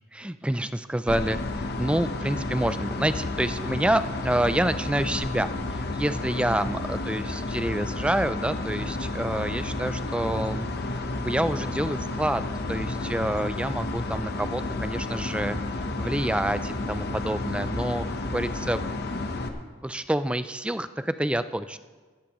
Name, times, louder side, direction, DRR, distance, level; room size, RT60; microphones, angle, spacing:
voice 1, 0.1-10.7 11.1-12.4 12.7-15.6 16.0-18.0 18.3-18.8 19.8-21.8, right 1 dB, 5° right, 12 dB, 0.3 m, -28 dB
sound 1, 1.1-19.5, left 2 dB, 50° left, 1.0 m, -31 dB
17.0 x 13.5 x 3.1 m, 1.4 s
head